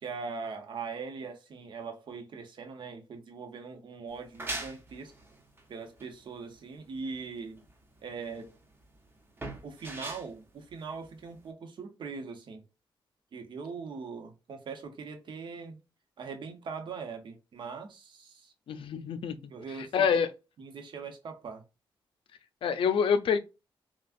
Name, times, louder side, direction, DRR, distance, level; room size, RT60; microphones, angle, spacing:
voice 1, 0.0-5.1 5.7-7.6 8.0-8.5 9.6-12.6 13.3-15.8 16.2-18.5 19.5-20.1 20.6-21.6, right 5 dB, 60° right, 1.0 m, -41 dB
sound 1, 4.1-11.5, right 2 dB, 25° right, 1.0 m, -43 dB
voice 2, 18.7-20.3 22.6-23.4, left 6 dB, 75° left, 0.6 m, -27 dB
5.9 x 2.4 x 2.5 m
wide cardioid pair, 125°, 9 cm